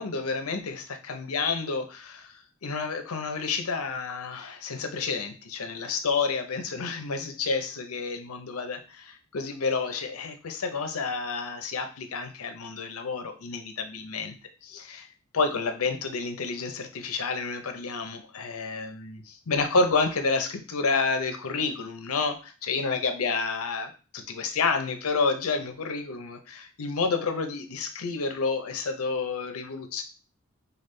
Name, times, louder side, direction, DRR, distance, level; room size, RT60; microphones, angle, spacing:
voice 1, 0.0-14.3 14.6-15.1 15.3-30.0, left 4 dB, 85° left, 7 dB, 0.7 m, -30 dB
5.2 x 2.3 x 3.2 m, 0.34 s
head